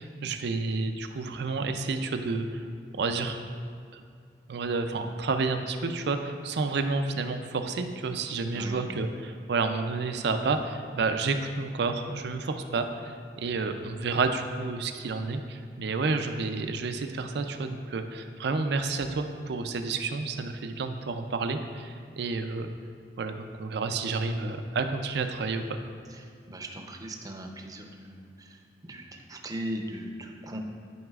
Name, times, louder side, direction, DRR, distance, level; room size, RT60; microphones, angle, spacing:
voice 1, 0.0-2.5 2.9-3.4 3.9-4.0 4.5-22.7 23.2-25.8, right 3 dB, 70° right, 7 dB, 0.5 m, -30 dB
voice 2, 8.5-8.9 26.2-30.6, right 1 dB, 20° right, 3 dB, 0.6 m, -39 dB
11.0 x 4.8 x 2.4 m, 2.3 s
head